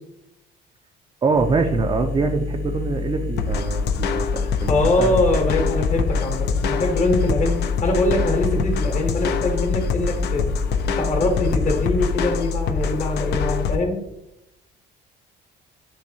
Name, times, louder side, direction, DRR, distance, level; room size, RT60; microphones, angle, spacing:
voice 1, 1.2-5.1, right 4 dB, 25° right, 3 dB, 0.4 m, -24 dB
sound 1, 1.3-12.3, left 4 dB, 80° left, 0.8 m, -29 dB
sound 2, 3.4-13.8, left 5 dB, 60° left, 0.4 m, -25 dB
voice 2, 4.7-10.5 11.0-14.0, left 2 dB, 35° left, 2 dB, 1.0 m, -23 dB
7.2 x 2.6 x 2.7 m, 0.86 s
cardioid pair, 110°, 20 cm